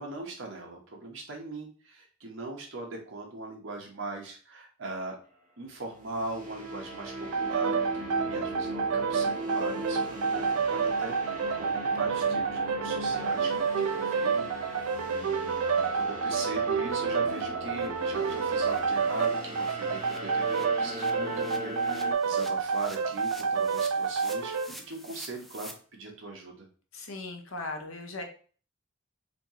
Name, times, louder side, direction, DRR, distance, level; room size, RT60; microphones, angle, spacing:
voice 1, 0.0-5.2 5.6-26.7, right 2 dB, 70° right, 1 dB, 1.2 m, -40 dB
sound 1, 5.9-22.1, right 1 dB, 40° right, 1.0 m, -38 dB
sound 2, 7.3-24.7, right 5 dB, 85° right, 0.4 m, -29 dB
sound 3, 14.9-15.1 15.4-15.6 15.8-25.7, equal, ahead, 0.3 m, -51 dB
voice 2, 26.9-28.2, left 2 dB, 80° left, 4 dB, 0.9 m, -38 dB
4.3 x 2.7 x 3.1 m, 0.41 s
head